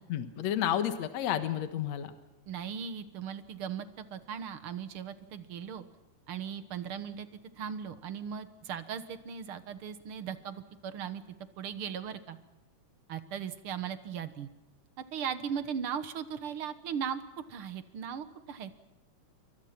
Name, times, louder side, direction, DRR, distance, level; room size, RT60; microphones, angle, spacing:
voice 1, 0.1-2.1, left 10 dB, 60° left, 9 dB, 2.4 m, -31 dB
voice 2, 2.5-5.8 6.3-7.3 7.5-11.2 11.6-12.4 13.1-14.5 15.1-17.2 17.5-18.7, right 7 dB, 55° right, 11 dB, 1.6 m, -38 dB
29.0 x 24.5 x 5.9 m, 0.97 s
omnidirectional pair, 3.7 m